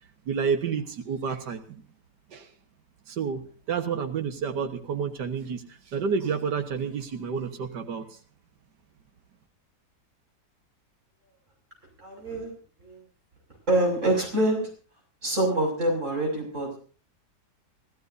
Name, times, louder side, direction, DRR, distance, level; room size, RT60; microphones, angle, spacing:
voice 1, 0.3-1.8 2.3-2.5 3.1-8.1, right 6 dB, 85° right, 6 dB, 2.0 m, -30 dB
voice 2, 12.0-12.5 12.8-13.0 13.7-14.7 15.2-16.8, right 1 dB, 45° right, 1 dB, 6.8 m, -25 dB
27.0 x 15.0 x 2.7 m, 0.40 s
omnidirectional pair, 1.8 m